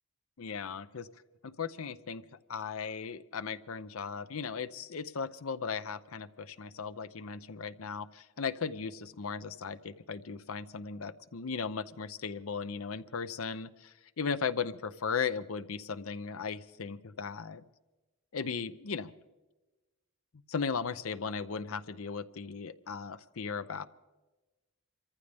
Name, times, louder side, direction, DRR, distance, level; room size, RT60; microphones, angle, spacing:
voice 1, 0.4-1.1 1.4-2.2 2.5-17.6 18.3-19.1 20.5-23.8, left 5 dB, 80° left, 14 dB, 0.7 m, -37 dB
27.0 x 15.0 x 3.5 m, 1.1 s
head